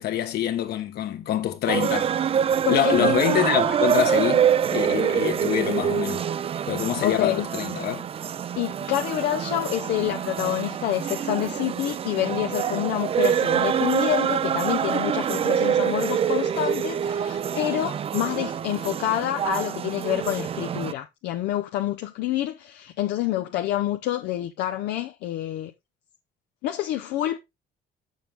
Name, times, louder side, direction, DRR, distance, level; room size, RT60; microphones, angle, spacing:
voice 1, 0.0-2.1 2.7-6.2 6.7-8.1, left 11 dB, 70° left, 1.4 m, -25 dB
sound 1, 1.7-20.9, right 8 dB, 35° right, 0.4 m, -25 dB
voice 2, 2.6-3.2 7.0-7.5 8.6-25.7 26.6-27.4, left 13 dB, 85° left, 0.7 m, -27 dB
6.9 x 6.7 x 3.7 m
cardioid pair, 110°, 17 cm